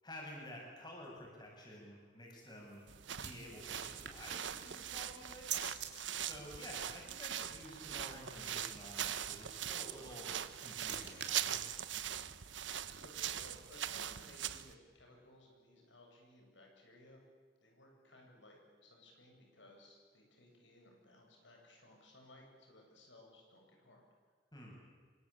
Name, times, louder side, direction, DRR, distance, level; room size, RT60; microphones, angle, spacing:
voice 1, 0.0-2.9 3.2-5.7 6.2-10.3 10.6-11.6 24.5-24.8, left 1 dB, 25° left, -1 dB, 7.9 m, -51 dB
sound 1, 2.3-5.9 10.0-13.4, right 9 dB, 65° right, 3.6 m, -48 dB
sound 2, 2.9-14.7, right 10 dB, 85° right, 1.1 m, -42 dB
sound 3, 9.3-9.4 11.3-13.7 14.1-14.2 15.0-15.1, equal, 5° left, 5.1 m, -65 dB
voice 2, 13.0-17.2 17.6-24.0, left 1 dB, 85° left, 1 dB, 8.0 m, -60 dB
27.5 x 24.5 x 8.7 m, 1.5 s
head